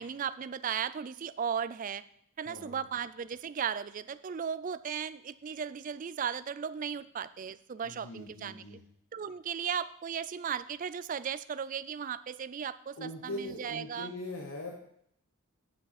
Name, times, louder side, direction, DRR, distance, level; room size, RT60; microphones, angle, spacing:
voice 1, 0.0-2.0 2.4-8.8 9.1-14.1, right 7 dB, 35° right, 15 dB, 0.3 m, -36 dB
voice 2, 2.5-2.8 7.8-8.8 13.0-14.8, left 1 dB, 65° left, 2 dB, 1.2 m, -41 dB
8.7 x 7.8 x 4.1 m, 0.72 s
head